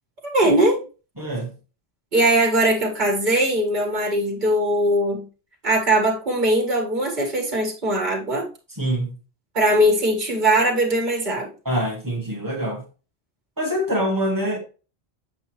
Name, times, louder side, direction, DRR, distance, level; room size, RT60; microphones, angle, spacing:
voice 1, 0.2-0.8 2.1-5.2 5.6-8.5 9.5-11.5, right 1 dB, 45° right, 1.9 m, -20 dB
voice 2, 1.2-1.5 8.7-9.2 11.7-12.8 13.6-14.6, equal, 20° right, 1.8 m, -25 dB
7.5 x 5.4 x 3.1 m
omnidirectional pair, 1.1 m